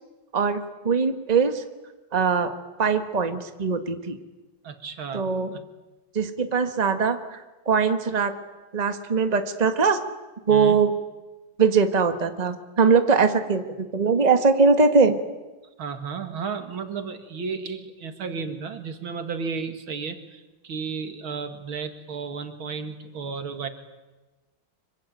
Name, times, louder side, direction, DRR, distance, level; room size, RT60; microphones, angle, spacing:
voice 1, 0.3-1.6 2.1-2.5 2.8-4.2 5.1-5.5 6.1-7.4 7.6-8.3 8.7-10.0 10.5-10.9 11.6-13.6 13.9-15.1, right 5 dB, 20° right, 8 dB, 1.5 m, -21 dB
voice 2, 4.6-5.3 10.5-10.8 15.8-23.7, right 5 dB, 80° right, 8 dB, 2.8 m, -33 dB
25.5 x 23.0 x 9.3 m, 1.1 s
omnidirectional pair, 2.2 m